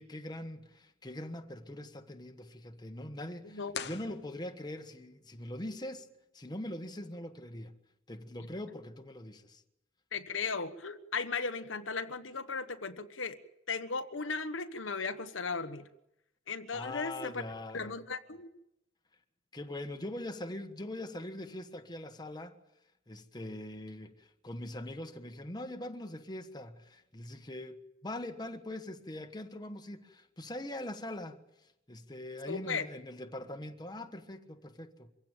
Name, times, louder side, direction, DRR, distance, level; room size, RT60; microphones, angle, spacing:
voice 1, 0.0-6.1 6.3-7.8 8.1-9.6 16.7-17.9 19.5-22.6 23.1-31.4 31.9-35.1, left 1 dB, 20° left, 1.4 m, -42 dB
sound 1, 3.7-4.9, left 8 dB, 60° left, 0.9 m, -43 dB
voice 2, 10.1-13.4 13.7-15.8 16.5-17.4 17.7-18.5 32.5-32.9, left 4 dB, 85° left, 1.3 m, -36 dB
24.0 x 16.0 x 9.0 m
head